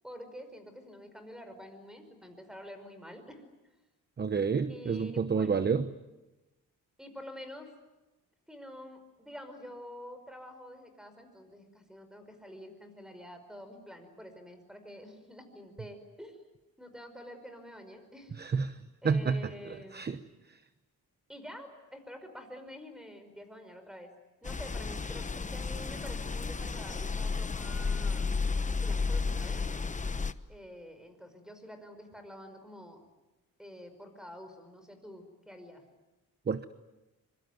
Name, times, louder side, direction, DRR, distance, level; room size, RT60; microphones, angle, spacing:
voice 1, 0.0-3.4 4.7-5.7 7.0-7.7 8.5-16.4 16.8-18.4 19.0-20.3 21.3-24.1 24.4-28.3 28.8-29.7 30.5-33.0 33.6-35.8, equal, ahead, 8 dB, 5.3 m, -48 dB
voice 2, 4.2-5.9 18.4-18.8 19.0-19.4 19.9-20.2 36.5-36.6, right 5 dB, 30° right, 12 dB, 0.9 m, -29 dB
sound 1, 24.4-30.3, left 4 dB, 20° left, 1.0 m, -32 dB
25.0 x 24.0 x 9.4 m, 1.0 s
cardioid pair, 105°, 35 cm